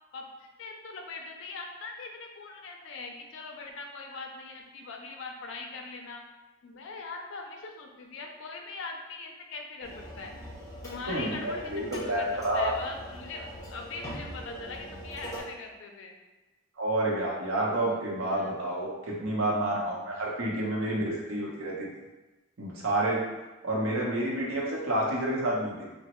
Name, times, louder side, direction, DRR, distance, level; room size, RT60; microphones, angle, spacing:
voice 1, 0.1-6.2 6.6-10.3 10.8-11.6 12.0-16.1 18.3-18.5, left 3 dB, 65° left, 2 dB, 0.4 m, -41 dB
sound 1, 9.8-15.4, equal, 15° left, 0.7 m, -43 dB
voice 2, 11.1-12.7 16.8-21.9 22.6-23.2 23.6-25.9, right 1 dB, 90° right, -3 dB, 0.7 m, -29 dB
3.1 x 2.0 x 2.9 m, 1.1 s
head